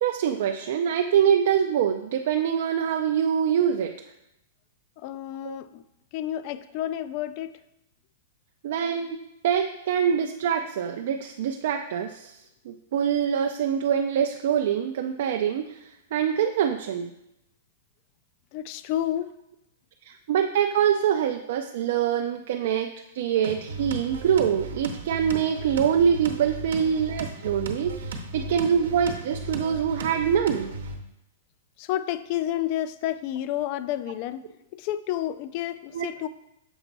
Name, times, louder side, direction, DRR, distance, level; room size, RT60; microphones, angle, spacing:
voice 1, 0.0-3.9 5.4-5.6 8.6-9.2 9.4-12.4 12.7-15.8 16.1-17.1 20.1-22.9 23.1-30.7 35.9-36.1, right 8 dB, 60° right, 4 dB, 0.4 m, -24 dB
voice 2, 5.0-5.8 6.1-7.5 18.5-19.3 31.8-34.4 34.8-36.3, left 12 dB, 40° left, 14 dB, 0.3 m, -30 dB
sound 1, 23.4-31.0, right 2 dB, 90° right, 0.9 m, -36 dB
6.9 x 4.4 x 4.0 m, 0.83 s
supercardioid pair, 160°, 0 cm